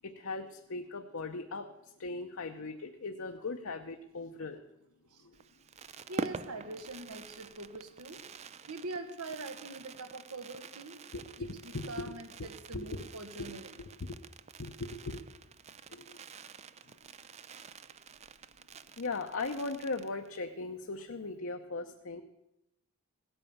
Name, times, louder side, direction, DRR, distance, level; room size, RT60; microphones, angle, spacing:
voice 1, 0.0-1.7 2.0-4.6 5.2-5.3 11.4-12.1 12.7-13.0 13.4-13.5 14.6-15.2 15.9-16.2 19.0-22.2, left 3 dB, 60° left, 4 dB, 0.8 m, -38 dB
Fireworks, 5.3-20.5 20.8-20.9 21.1-21.4, right 5 dB, 30° right, 0.4 m, -47 dB
voice 2, 6.1-8.2 8.7-11.0 11.4-13.8, right 2 dB, 85° right, 8 dB, 1.6 m, -43 dB
16.5 x 8.9 x 7.1 m, 0.87 s
head